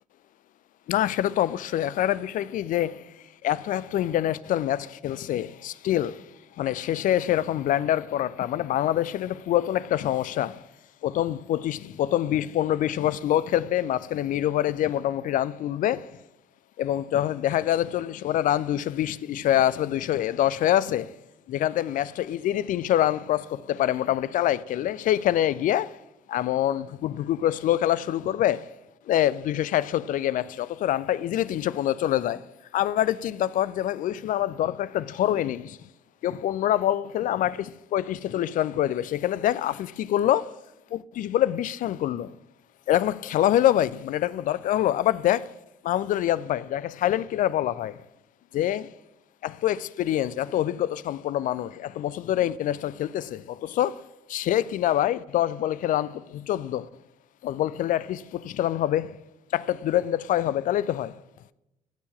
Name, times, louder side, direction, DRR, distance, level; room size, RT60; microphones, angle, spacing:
voice 1, 0.9-3.1 3.4-6.3 6.6-10.6 11.0-16.1 16.8-21.1 21.5-26.0 26.3-28.7 29.1-35.8 36.2-40.6 40.9-42.4 42.9-45.5 45.8-48.0 48.5-48.9 49.4-54.0 54.3-56.9 57.4-59.2 59.5-61.2, left 12 dB, 50° left, 0.5 m, -25 dB
15.0 x 7.1 x 7.2 m
figure-of-eight pair, 45°, 18 cm